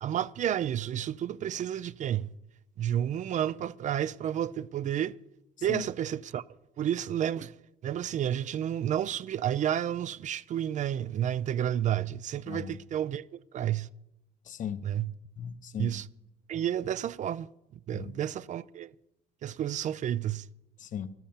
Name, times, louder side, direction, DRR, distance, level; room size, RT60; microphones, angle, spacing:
voice 1, 0.0-2.3 2.8-5.1 5.6-6.4 6.8-7.5 7.8-13.3 13.5-13.9 14.8-15.1 15.8-16.1 16.5-17.5 17.9-18.9 19.4-20.5, right 10 dB, 45° right, 0.4 m, -31 dB
voice 2, 12.5-12.8 14.5-14.8 15.4-15.9 17.9-18.2 20.8-21.1, left 8 dB, 50° left, 0.9 m, -37 dB
12.5 x 11.5 x 7.1 m
cardioid pair, 110°, 17 cm